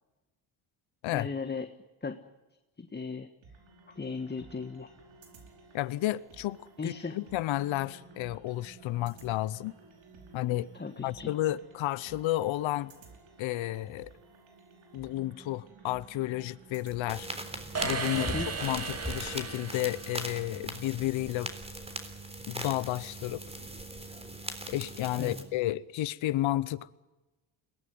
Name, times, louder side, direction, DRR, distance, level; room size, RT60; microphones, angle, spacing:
voice 1, 1.1-1.7 2.0-2.2 2.8-3.3 3.9-4.9 6.8-7.2 10.7-11.3 18.1-18.5 25.2-25.4, left 4 dB, 20° left, 1.4 m, -36 dB
sound 1, 3.4-18.8, right 4 dB, 75° right, 5.4 m, -54 dB
voice 2, 5.7-9.7 10.3-10.7 11.0-12.9 13.4-14.1 14.9-17.3 17.8-18.3 18.6-21.5 22.5-23.4 24.7-27.0, left 15 dB, 75° left, 0.8 m, -32 dB
sound 2, 17.1-25.4, right 1 dB, 15° right, 3.6 m, -40 dB
sound 3, 17.7-20.6, right 4 dB, 30° right, 2.2 m, -36 dB
22.5 x 18.0 x 9.5 m
cardioid pair, 75°, 48 cm